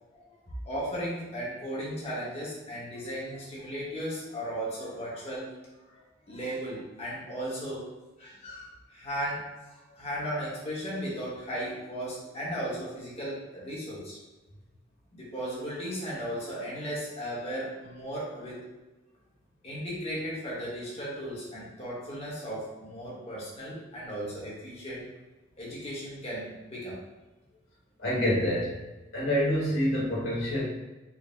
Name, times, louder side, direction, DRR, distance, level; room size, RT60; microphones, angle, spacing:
voice 1, 0.6-5.5 6.3-7.8 8.2-9.4 9.7-14.2 15.1-18.6 19.6-25.0 25.6-27.0, equal, 35° left, -7 dB, 1.0 m, -36 dB
voice 2, 28.0-28.8 29.1-30.6, equal, 80° left, -5 dB, 1.4 m, -27 dB
4.7 x 2.0 x 3.4 m, 1.1 s
head